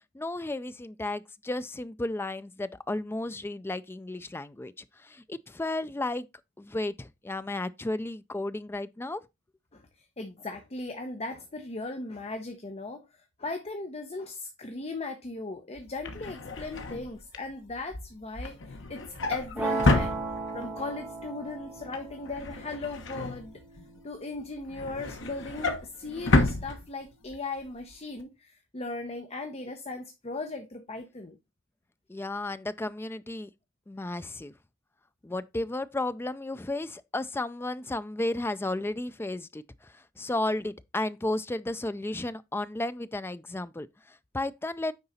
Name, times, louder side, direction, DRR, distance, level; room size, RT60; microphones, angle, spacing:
voice 1, 0.1-6.3 6.6-9.2 32.1-33.5 33.9-34.5 35.2-44.9, left 2 dB, 10° left, 0.4 m, -33 dB
voice 2, 9.7-13.0 13.4-20.2 20.5-23.5 24.0-31.4, left 3 dB, 30° left, 0.8 m, -38 dB
Drawer open or close, 15.8-20.8 21.2-21.5 21.8-24.0 24.4-27.4 27.7-27.9 28.2-28.3, left 2 dB, 65° left, 1.2 m, -30 dB
sound 1, 19.6-25.6, right 3 dB, 10° right, 2.4 m, -37 dB
9.5 x 3.9 x 4.1 m
head